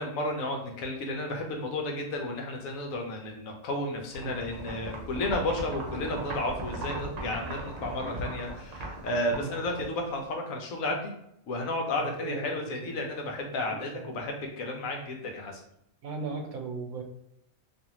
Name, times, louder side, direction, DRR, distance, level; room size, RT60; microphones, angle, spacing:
voice 1, 0.0-11.1 11.5-15.6, left 1 dB, 75° left, 2 dB, 1.0 m, -32 dB
sound 1, 4.1-10.2, right 2 dB, 55° right, 0.4 m, -38 dB
voice 2, 12.0-12.6 13.7-14.3 16.0-17.0, right 4 dB, 80° right, 3 dB, 1.0 m, -37 dB
2.7 x 2.5 x 2.9 m, 0.77 s
omnidirectional pair, 1.5 m